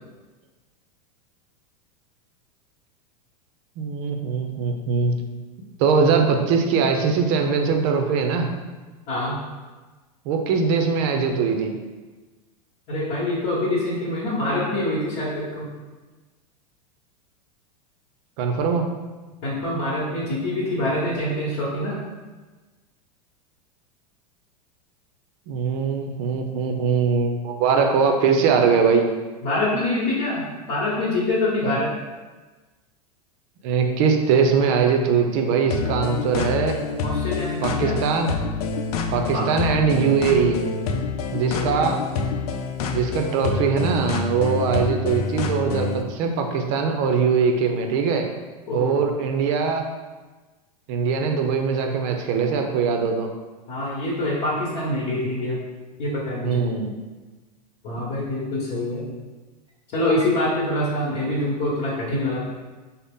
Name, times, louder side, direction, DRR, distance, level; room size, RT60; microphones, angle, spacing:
voice 1, 3.8-5.1 5.8-8.5 10.2-11.7 18.4-18.9 25.5-29.1 31.6-31.8 33.6-36.8 37.6-38.3 39.1-40.6 41.3-42.0 42.9-48.3 48.7-49.9 50.9-53.3 56.4-56.9, right 5 dB, 55° right, 4 dB, 0.6 m, -21 dB
voice 2, 9.1-9.4 12.9-15.7 19.4-22.0 29.4-31.9 37.0-37.9 39.3-39.4 41.4-41.9 48.7-49.0 53.7-55.6 56.0-56.7 57.8-59.0 59.9-62.4, left 1 dB, 50° left, -7 dB, 1.1 m, -25 dB
sound 1, 35.7-46.0, left 5 dB, 70° left, 0.5 m, -27 dB
3.9 x 2.1 x 3.6 m, 1.3 s
hypercardioid pair, 115°, 20 cm